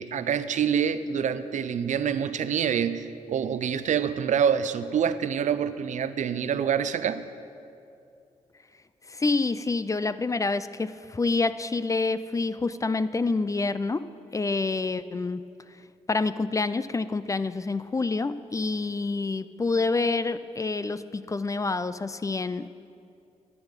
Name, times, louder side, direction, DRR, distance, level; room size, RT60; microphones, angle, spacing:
voice 1, 0.0-7.2, right 8 dB, 70° right, 13 dB, 0.5 m, -26 dB
voice 2, 9.1-14.1 14.3-15.4 16.1-22.7, left 3 dB, 25° left, 14 dB, 0.4 m, -27 dB
12.5 x 8.2 x 5.2 m, 2.5 s
cardioid pair, 60°, 13 cm